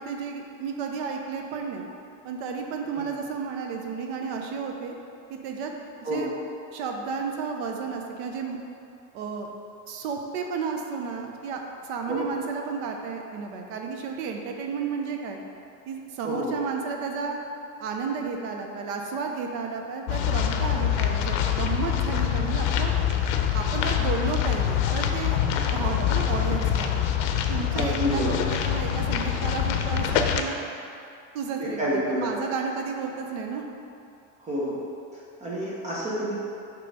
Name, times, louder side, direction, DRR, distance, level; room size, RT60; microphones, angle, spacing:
voice 1, 0.0-1.9 2.2-4.9 5.3-5.7 6.0-6.3 6.7-8.6 9.1-9.5 9.9-15.4 15.9-17.4 17.8-22.9 23.5-25.4 25.7-26.9 27.5-30.5 31.3-33.6, right 5 dB, 65° right, 2 dB, 0.7 m, -32 dB
voice 2, 16.2-16.5 25.8-25.9 27.7-28.3 31.6-32.3 34.4-34.8 35.1-36.4, equal, 20° right, -7 dB, 0.7 m, -29 dB
sound 1, 20.1-30.4, left 9 dB, 85° left, 0.6 m, -25 dB
6.7 x 3.0 x 5.3 m, 2.6 s
cardioid pair, 170°, 37 cm